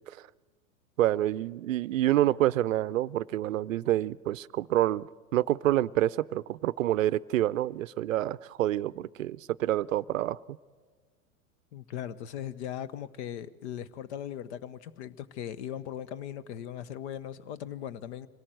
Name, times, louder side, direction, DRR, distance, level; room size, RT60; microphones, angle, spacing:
voice 1, 1.0-5.1 5.3-10.4, right 13 dB, 70° right, 0.6 m, -27 dB
voice 2, 11.7-18.3, left 10 dB, 50° left, 1.0 m, -39 dB
25.5 x 18.0 x 7.7 m
figure-of-eight pair, 100°, 42 cm